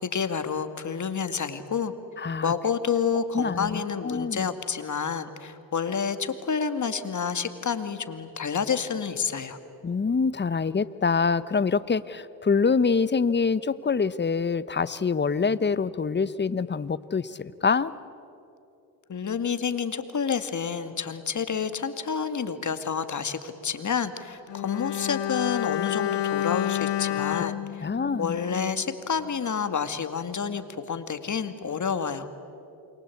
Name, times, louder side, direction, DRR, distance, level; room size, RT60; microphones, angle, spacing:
voice 1, 0.0-1.9 2.4-9.6 19.1-27.9 28.2-32.3, left 6 dB, 40° left, 10 dB, 2.2 m, -29 dB
voice 2, 2.2-2.5 3.3-4.5 9.8-17.9 27.1-27.2 27.8-28.4, left 5 dB, 25° left, 16 dB, 1.0 m, -25 dB
Bowed string instrument, 24.5-28.9 29.2-29.3, left 11 dB, 70° left, 1.1 m, -29 dB
28.5 x 23.5 x 8.6 m, 2.8 s
supercardioid pair, 65°, 43 cm